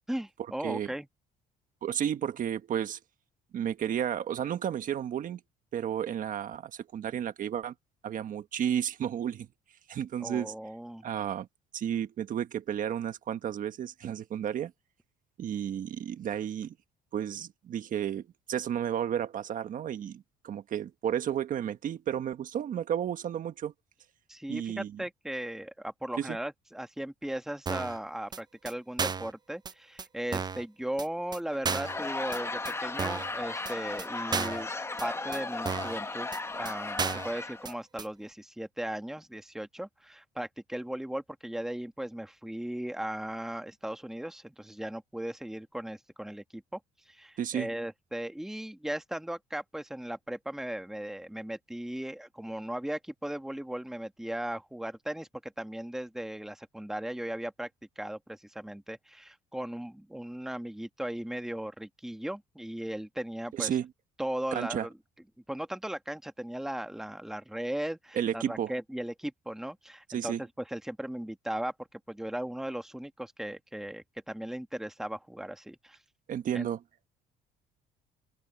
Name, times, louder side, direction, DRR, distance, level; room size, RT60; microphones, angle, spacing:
voice 1, 0.1-1.1 10.2-11.1 24.3-34.7 35.0-46.8 47.1-57.7 58.0-63.7 64.2-64.9 65.5-76.0 76.5-76.7, right 1 dB, ahead, 1.4 m, -37 dB
voice 2, 1.8-3.0 3.5-5.4 5.7-7.7 8.0-9.5 9.9-10.5 11.0-11.5 11.7-14.7 15.4-16.7 17.1-23.7 24.5-25.0 26.2-26.4 47.4-47.7 63.5-63.9 64.5-64.9 68.1-68.7 70.1-70.4 76.3-76.8, right 9 dB, 50° right, 1.4 m, -32 dB
sound 1, 27.7-28.0 28.3-28.4 28.7-28.8 29.0-29.3 29.7-29.8 30.0-30.1 30.3-30.6 31.0-31.1 31.3-31.4 31.6-32.0 32.3-32.4 32.6-32.7 33.0-33.3 33.7-33.8 34.0-34.1 34.3-34.6 35.0-35.1 35.3-35.4 35.7-36.0 36.3-36.4 36.6-36.7 37.0-37.3 37.6-37.7 38.0-38.1, right 5 dB, 25° right, 0.6 m, -33 dB
Laughter / Crowd, 31.5-37.7, left 3 dB, 15° left, 1.4 m, -36 dB
open air
cardioid pair, 110°, 17 cm